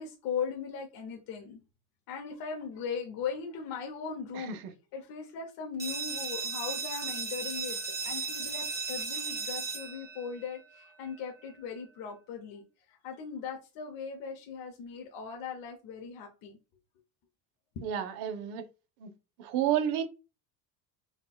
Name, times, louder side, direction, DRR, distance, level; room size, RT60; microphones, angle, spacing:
voice 1, 0.0-1.6 2.1-4.6 4.9-7.8 8.0-16.6, left 6 dB, 55° left, 0.7 m, -39 dB
voice 2, 4.3-4.7 17.8-18.7 19.0-19.1 19.4-20.0, right 10 dB, 65° right, 0.6 m, -31 dB
sound 1, 5.8-11.2, right 4 dB, 5° right, 0.6 m, -36 dB
4.2 x 2.2 x 2.2 m
cardioid pair, 145°, 42 cm